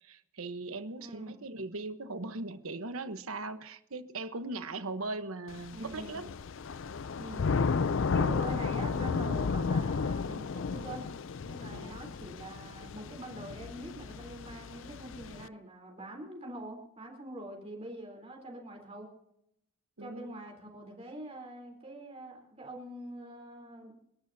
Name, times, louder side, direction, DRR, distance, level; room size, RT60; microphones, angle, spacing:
voice 1, 0.0-6.3 11.7-12.0 20.0-20.4, right 2 dB, 70° right, 1.1 m, -39 dB
voice 2, 1.0-1.4 5.7-6.3 7.1-7.5 8.1-11.1 11.4-19.1 20.0-24.0, right 1 dB, 30° right, 3.6 m, -44 dB
Thunder / Rain, 5.5-15.5, left 5 dB, 60° left, 0.4 m, -33 dB
30.0 x 12.0 x 2.8 m
head